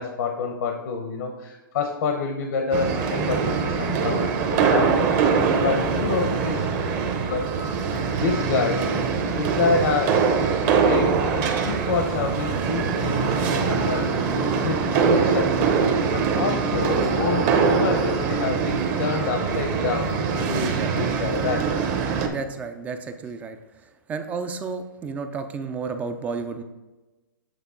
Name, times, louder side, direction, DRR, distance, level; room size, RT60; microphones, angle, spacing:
voice 1, 0.0-6.7 7.3-7.5 7.9-10.3 10.7-21.7, left 4 dB, 60° left, 4 dB, 0.8 m, -28 dB
sound 1, 2.7-22.3, right 5 dB, 35° right, 0.8 m, -23 dB
voice 2, 22.3-23.6 24.1-26.6, right 5 dB, 15° right, 8 dB, 0.3 m, -31 dB
8.1 x 3.6 x 3.7 m, 1.1 s
hypercardioid pair, 150°, 11 cm